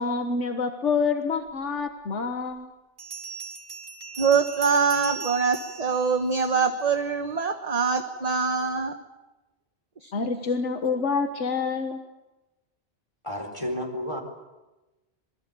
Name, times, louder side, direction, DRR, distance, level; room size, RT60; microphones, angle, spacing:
voice 1, 0.0-2.7 10.1-12.0, left 5 dB, 85° left, 7 dB, 1.7 m, -27 dB
Bell, 1.8-1.9 3.0-6.9, right 5 dB, 70° right, 4.1 m, -39 dB
voice 2, 4.2-8.9 10.0-10.3, right 5 dB, 35° right, 7 dB, 1.4 m, -24 dB
voice 3, 13.2-14.2, equal, 25° left, 2 dB, 4.3 m, -31 dB
26.5 x 23.0 x 8.4 m, 1.0 s
omnidirectional pair, 1.2 m